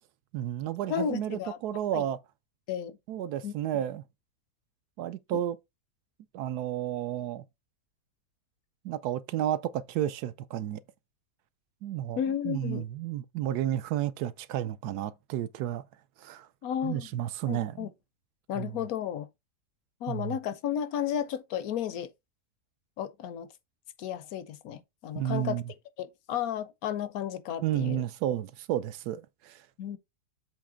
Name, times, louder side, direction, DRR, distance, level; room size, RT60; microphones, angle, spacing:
voice 1, 0.3-2.2 3.1-4.0 5.0-5.6 6.3-7.4 8.8-10.8 11.8-12.2 12.4-15.8 16.2-16.5 16.8-17.9 18.5-18.8 20.1-20.4 25.1-25.6 27.6-29.6, right 11 dB, 75° right, 1.1 m, -32 dB
voice 2, 0.9-1.6 1.9-2.0 2.7-2.9 3.4-3.5 12.2-12.8 16.6-17.1 17.5-17.9 18.5-19.3 20.0-22.1 23.0-23.5 24.0-25.6 26.0-28.0 29.8-30.0, left 9 dB, 70° left, 1.0 m, -33 dB
7.5 x 3.1 x 4.9 m
omnidirectional pair, 1.7 m